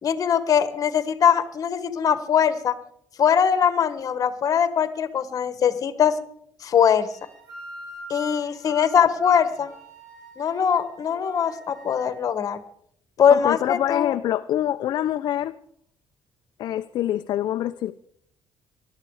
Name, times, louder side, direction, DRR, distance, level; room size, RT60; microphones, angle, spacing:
voice 1, 0.0-2.7 3.2-6.2 6.6-7.1 8.1-9.7 10.4-12.6 13.2-14.1, left 8 dB, 45° left, 1.4 m, -21 dB
sound 1, 6.8-12.1, left 1 dB, 50° right, 7.5 m, -42 dB
voice 2, 13.3-15.5 16.6-17.9, left 12 dB, 65° left, 0.5 m, -25 dB
19.5 x 12.5 x 4.9 m
cardioid pair, 125°, 8 cm